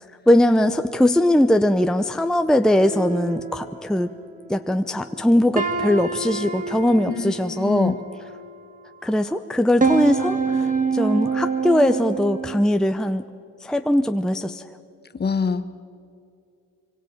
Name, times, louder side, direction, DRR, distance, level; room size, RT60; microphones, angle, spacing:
voice 1, 0.3-4.1 4.5-7.9 9.0-13.2 13.6-14.6, left 1 dB, ahead, 7 dB, 0.7 m, -20 dB
sound 1, 2.8-4.6 5.1-5.2 5.6-8.8 9.4-12.6, right 4 dB, 25° right, 1.9 m, -27 dB
voice 2, 7.1-8.1 15.1-15.7, left 5 dB, 35° left, 11 dB, 1.2 m, -25 dB
25.0 x 24.0 x 5.2 m, 2.5 s
cardioid pair, 90°, 30 cm